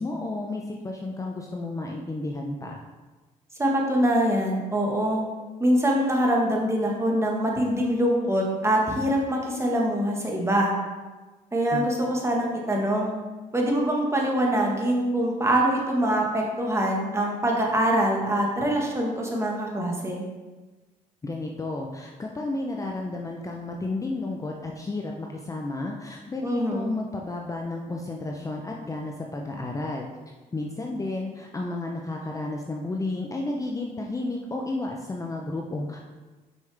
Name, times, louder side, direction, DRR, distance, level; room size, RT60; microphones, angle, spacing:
voice 1, 0.0-2.8 11.7-11.9 21.2-30.1 30.5-36.0, left 2 dB, 20° left, 0 dB, 0.7 m, -32 dB
voice 2, 3.6-5.2 5.6-10.7 11.5-13.1 13.5-20.2 26.4-26.9, right 1 dB, 15° right, -1 dB, 1.6 m, -24 dB
6.3 x 5.4 x 3.5 m, 1.2 s
cardioid pair, 85°, 15 cm